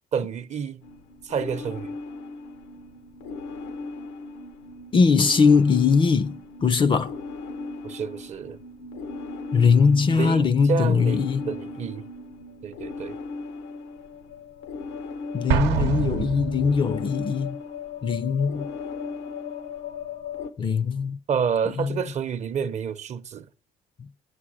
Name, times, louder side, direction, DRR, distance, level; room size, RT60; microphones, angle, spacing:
voice 1, 0.1-0.8 1.2-1.9 7.8-8.6 10.1-12.1 12.6-13.2 21.3-23.5, right 7 dB, 45° right, 0.7 m, -29 dB
sound 1, 0.8-20.5, left 4 dB, 90° left, 0.9 m, -37 dB
voice 2, 4.9-7.1 9.5-11.5 15.3-17.6 18.0-18.7 20.6-21.2 21.8-21.9, left 5 dB, 30° left, 0.5 m, -21 dB
Explosion, 15.5-17.1, right 9 dB, 85° right, 0.8 m, -26 dB
8.4 x 7.5 x 6.2 m
cardioid pair, 110°, 17 cm